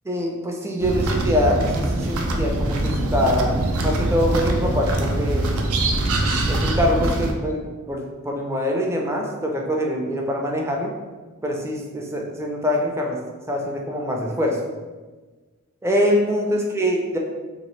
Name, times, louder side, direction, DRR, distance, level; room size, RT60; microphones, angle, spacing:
voice 1, 0.1-5.6 6.5-10.9 11.4-13.2 13.5-14.6 15.8-17.2, equal, 15° right, 0 dB, 0.4 m, -24 dB
sound 1, 0.8-7.3, right 1 dB, 80° right, 0.4 m, -23 dB
2.9 x 2.7 x 3.1 m, 1.3 s
head